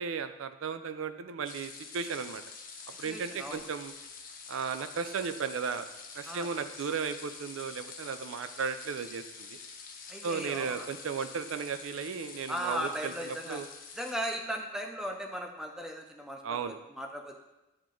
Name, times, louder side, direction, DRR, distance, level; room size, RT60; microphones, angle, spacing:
voice 1, 0.0-2.4 3.0-3.9 4.5-5.9 6.1-9.6 10.2-13.7 16.4-16.8, right 6 dB, 85° right, 11 dB, 0.4 m, -35 dB
sound 1, 1.4-14.1, left 5 dB, 45° left, 0.7 m, -47 dB
voice 2, 3.0-3.6 6.2-6.5 10.1-10.9 12.5-13.6 13.9-17.4, equal, 5° right, 2 dB, 0.5 m, -37 dB
8.6 x 3.1 x 3.8 m, 0.98 s
head